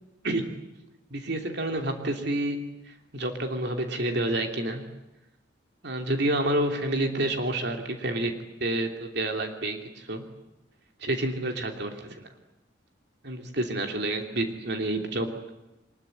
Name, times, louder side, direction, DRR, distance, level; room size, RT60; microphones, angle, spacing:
voice 1, 0.2-0.8 1.1-2.6 2.9-4.8 5.8-8.3 8.6-10.2 11.0-12.2 13.2-15.5, right 1 dB, 60° right, 4 dB, 3.0 m, -29 dB
24.5 x 21.5 x 9.9 m, 0.96 s
head